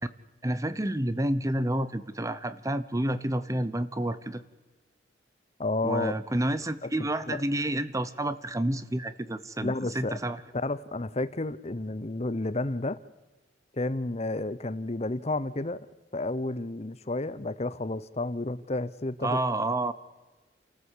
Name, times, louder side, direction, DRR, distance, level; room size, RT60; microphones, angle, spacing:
voice 1, 0.4-4.4 5.8-10.4 19.2-19.9, right 1 dB, 15° right, 14 dB, 0.9 m, -29 dB
voice 2, 5.6-6.1 7.0-7.4 9.6-10.2 10.6-13.0 13.7-15.9 16.1-19.4, left 2 dB, 35° left, 16 dB, 0.8 m, -31 dB
29.0 x 14.0 x 8.5 m, 1.2 s
head